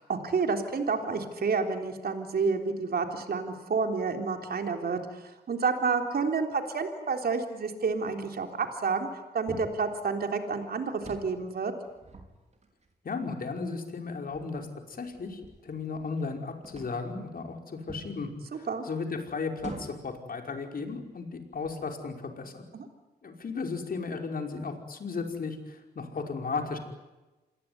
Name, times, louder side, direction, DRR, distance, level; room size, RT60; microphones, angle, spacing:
voice 1, 0.1-11.7 18.7-18.8 22.7-22.8, right 4 dB, 70° right, 5 dB, 3.6 m, -29 dB
sound 1, 9.5-9.9 10.9-11.4 11.8-12.9 13.6-13.7 14.3-16.3 16.6-17.1 17.9-18.2 19.6-20.2 20.9-21.0 21.5-22.0, right 3 dB, 45° right, 5.1 m, -45 dB
voice 2, 13.0-22.6 23.2-26.8, left 4 dB, 60° left, 4 dB, 5.4 m, -35 dB
27.5 x 21.5 x 9.7 m, 1.1 s
wide cardioid pair, 95°, 17 cm